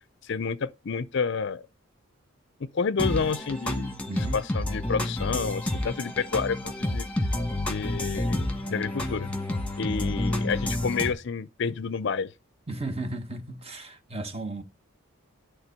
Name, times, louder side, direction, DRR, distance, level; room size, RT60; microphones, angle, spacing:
voice 1, 0.2-1.7 2.6-3.9 4.3-7.1 7.6-9.3 9.8-12.3, left 5 dB, 55° left, 0.5 m, -29 dB
sound 1, 3.0-11.1, left 1 dB, 5° left, 1.5 m, -29 dB
voice 2, 4.1-4.4 12.7-14.6, right 2 dB, 25° right, 1.1 m, -34 dB
11.0 x 3.7 x 6.6 m
head